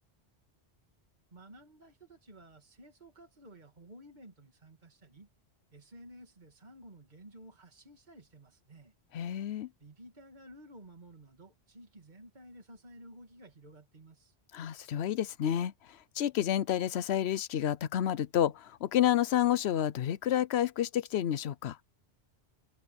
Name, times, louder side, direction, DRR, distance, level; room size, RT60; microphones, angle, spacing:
voice 1, 1.3-5.3 5.7-8.9 9.8-14.4, right 1 dB, 40° right, 2.7 m, -54 dB
voice 2, 9.1-9.7 14.5-21.8, left 11 dB, 75° left, 0.9 m, -30 dB
omnidirectional pair, 1.1 m